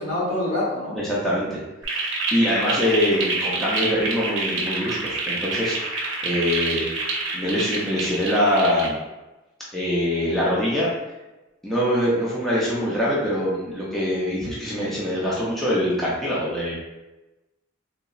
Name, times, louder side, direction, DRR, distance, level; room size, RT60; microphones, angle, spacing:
voice 1, 0.0-1.0, left 1 dB, 70° left, -7 dB, 1.4 m, -25 dB
voice 2, 0.9-1.6 1.9-6.8 7.3-9.0 9.7-10.9 11.6-16.7, equal, ahead, -8 dB, 0.4 m, -24 dB
sound 1, 1.8-8.9, right 3 dB, 65° right, 0.7 m, -27 dB
3.7 x 2.0 x 2.3 m, 1.0 s
head